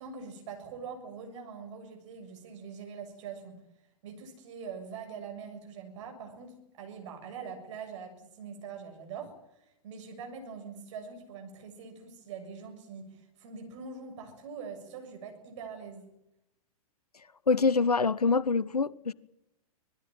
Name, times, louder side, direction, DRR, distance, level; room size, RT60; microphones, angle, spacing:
voice 1, 0.0-3.6 4.0-9.3 9.8-16.1, right 6 dB, 50° right, 7.1 m, -43 dB
voice 2, 17.5-19.1, left 4 dB, 80° left, 0.9 m, -25 dB
25.0 x 19.5 x 9.2 m
figure-of-eight pair, 105°, 19 cm